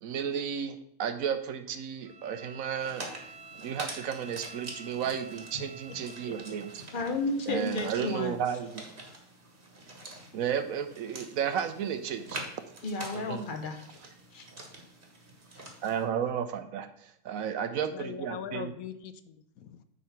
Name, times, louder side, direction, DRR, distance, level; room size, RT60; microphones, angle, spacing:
voice 1, 0.0-3.1 3.6-6.7 7.5-8.9 10.3-12.4 13.1-13.5 15.8-18.7, right 8 dB, 75° right, 9 dB, 1.1 m, -33 dB
Bowed string instrument, 2.0-6.9, right 4 dB, 55° right, 0.4 m, -49 dB
sound 1, 2.8-16.1, right 2 dB, 40° right, 1.7 m, -46 dB
voice 2, 6.9-8.4 12.8-13.8 14.3-14.5, left 3 dB, 40° left, 4 dB, 1.0 m, -32 dB
voice 3, 17.7-19.8, left 8 dB, 85° left, 11 dB, 1.1 m, -42 dB
9.2 x 3.8 x 5.8 m, 0.71 s
omnidirectional pair, 1.5 m